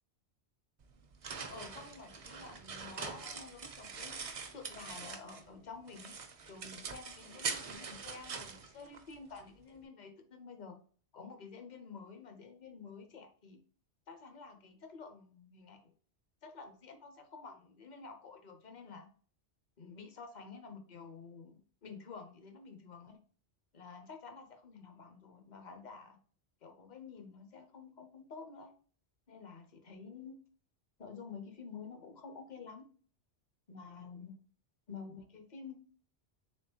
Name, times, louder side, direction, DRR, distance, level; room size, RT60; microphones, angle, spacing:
sound 1, 0.8-5.5 5.9-9.4, right 5 dB, 50° right, 0.4 m, -43 dB
voice 1, 1.4-4.3 4.5-6.1 6.5-10.8 11.1-13.6 14.1-15.9 16.4-19.1 19.8-23.2 23.7-26.2 26.6-28.7 29.3-30.4 31.0-32.9 33.7-34.4 34.9-35.8, left 5 dB, 45° left, 6 dB, 0.7 m, -50 dB
3.7 x 3.5 x 2.7 m, 0.43 s
omnidirectional pair, 1.1 m